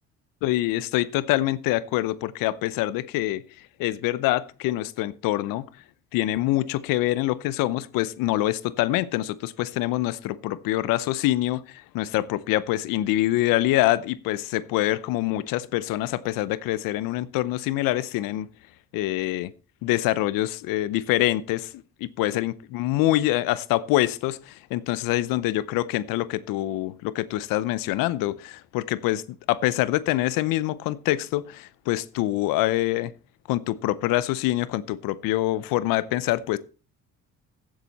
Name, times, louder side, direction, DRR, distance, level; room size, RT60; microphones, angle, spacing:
voice 1, 0.4-3.4 3.8-5.6 6.1-18.5 18.9-19.5 19.8-21.7 22.2-29.2 29.5-33.1 33.5-36.6, left 16 dB, 85° left, 0.8 m, -25 dB
15.5 x 7.9 x 4.1 m
supercardioid pair, 70°, 33 cm